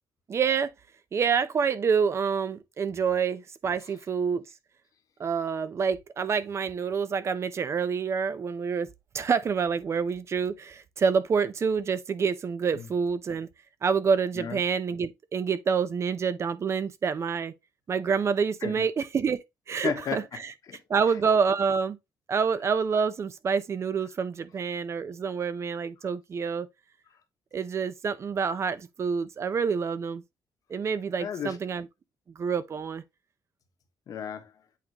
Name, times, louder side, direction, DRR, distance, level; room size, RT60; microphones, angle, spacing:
voice 1, 0.3-0.7 1.1-4.4 5.2-8.9 9.1-13.5 13.8-17.5 17.9-19.4 19.7-20.2 20.9-22.0 22.3-26.7 27.5-30.2 30.7-31.9 32.4-33.0, right 6 dB, 40° right, 0.7 m, -27 dB
voice 2, 19.8-20.8 31.2-31.6 34.1-34.6, left 8 dB, 60° left, 1.3 m, -34 dB
8.4 x 3.8 x 2.9 m
cardioid pair, 125°, 7 cm